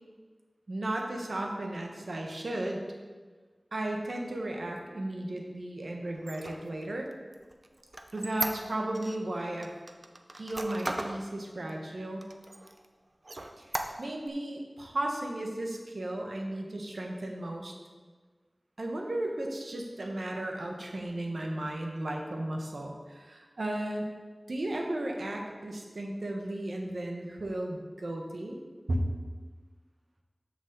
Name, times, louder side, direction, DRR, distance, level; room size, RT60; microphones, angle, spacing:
voice 1, 0.7-2.8 3.7-7.1 8.1-9.7 10.3-12.3 13.6-17.7 18.8-24.1 24.5-28.6 28.9-29.0, right 1 dB, 85° right, 1 dB, 1.2 m, -35 dB
Squeak, 6.2-9.2 9.6-11.2 11.7-11.8 12.2-12.9 13.2-14.3, right 2 dB, 55° right, 0.6 m, -37 dB
6.8 x 5.3 x 6.7 m, 1.4 s
wide cardioid pair, 60°, 0 cm